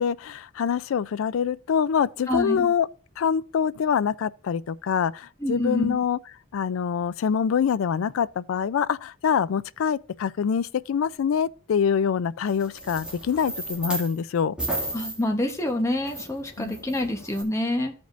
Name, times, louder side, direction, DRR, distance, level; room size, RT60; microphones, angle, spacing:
voice 1, 0.0-2.9 3.2-6.2 6.5-14.5 16.6-16.8, left 7 dB, 75° left, 0.3 m, -25 dB
voice 2, 2.3-2.7 5.4-5.9 14.9-17.9, left 1 dB, 15° left, 1.0 m, -27 dB
sound 1, 12.5-14.2 14.6-17.4, right 1 dB, 5° right, 2.0 m, -34 dB
15.0 x 5.2 x 2.5 m
head